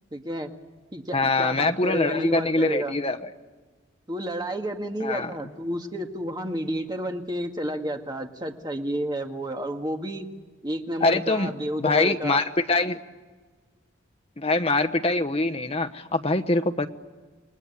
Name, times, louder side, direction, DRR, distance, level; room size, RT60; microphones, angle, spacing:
voice 1, 0.1-0.5 0.9-2.9 4.1-10.3 10.6-12.4, equal, 20° right, 4 dB, 1.9 m, -31 dB
voice 2, 1.1-3.3 5.0-5.3 11.0-11.5 11.8-13.0 14.4-16.9, left 2 dB, 30° left, 7 dB, 1.1 m, -24 dB
28.5 x 21.0 x 9.8 m, 1.4 s
head